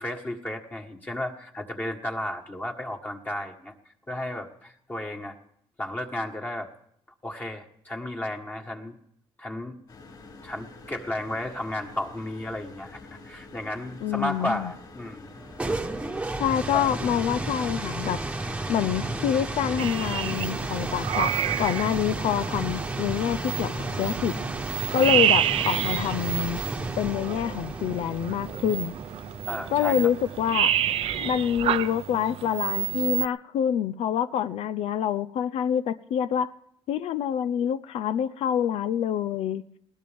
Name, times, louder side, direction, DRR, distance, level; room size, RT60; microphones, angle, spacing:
voice 1, 0.0-3.7 4.1-5.4 5.8-6.7 7.2-8.9 9.4-9.8 10.4-15.3 15.7-15.8 16.7-16.9 29.5-30.1, left 1 dB, 15° left, 2 dB, 1.5 m, -33 dB
sound 1, 9.9-24.2, left 3 dB, 45° left, 5.8 m, -47 dB
voice 2, 14.0-14.7 16.4-18.2 18.7-21.3 21.6-23.7 24.0-24.4 24.9-26.6 27.0-29.0 29.7-30.7 31.2-36.5 36.9-39.6, left 9 dB, 75° left, 13 dB, 0.6 m, -26 dB
sound 2, 15.3-32.0, right 2 dB, 10° right, 1.2 m, -33 dB
sound 3, 19.8-33.3, right 11 dB, 70° right, 0.7 m, -29 dB
20.5 x 18.0 x 3.5 m, 0.70 s
cardioid pair, 135°, 10 cm